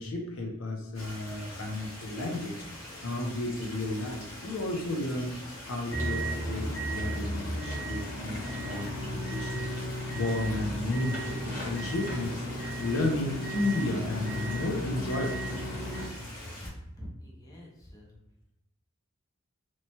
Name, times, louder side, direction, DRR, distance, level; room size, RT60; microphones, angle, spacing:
voice 1, 0.0-15.4, left 2 dB, 70° left, 1 dB, 0.5 m, -33 dB
Stream, 0.9-16.7, left 1 dB, 90° left, 1.2 m, -44 dB
sound 1, 5.9-16.1, equal, 40° left, 1.1 m, -34 dB
voice 2, 17.0-18.1, equal, 15° left, -4 dB, 0.6 m, -45 dB
3.0 x 2.1 x 2.7 m, 0.89 s
head